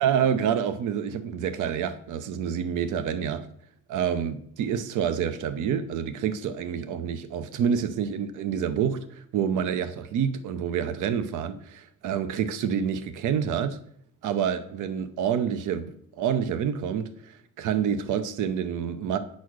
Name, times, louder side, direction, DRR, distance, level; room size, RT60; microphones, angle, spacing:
voice 1, 0.0-3.4 3.9-13.8 14.2-17.1 17.6-19.2, right 8 dB, 80° right, 0.8 m, -27 dB
8.3 x 4.3 x 6.3 m
cardioid pair, 90°, 30 cm